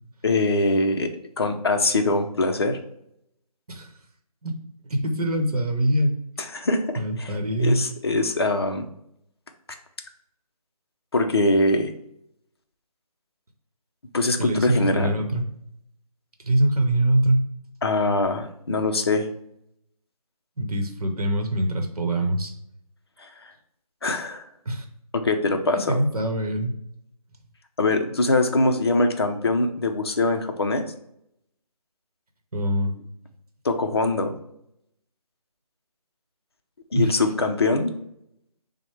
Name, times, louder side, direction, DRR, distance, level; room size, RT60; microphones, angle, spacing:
voice 1, 0.2-1.1 1.4-2.8 6.4-6.8 7.2-7.3 7.6-8.8 11.1-11.9 14.1-15.1 17.8-19.3 24.0-24.4 25.1-26.0 27.8-30.8 33.6-34.3 36.9-37.9, left 2 dB, 40° left, 5 dB, 0.5 m, -22 dB
voice 2, 4.8-6.1 7.0-7.8 14.4-15.5 16.4-17.4 20.6-22.5 24.6-24.8 25.9-26.7 32.5-32.9 36.9-37.2, right 1 dB, 70° right, 4 dB, 0.9 m, -23 dB
6.0 x 2.1 x 3.3 m, 0.75 s
figure-of-eight pair, 165°, 20 cm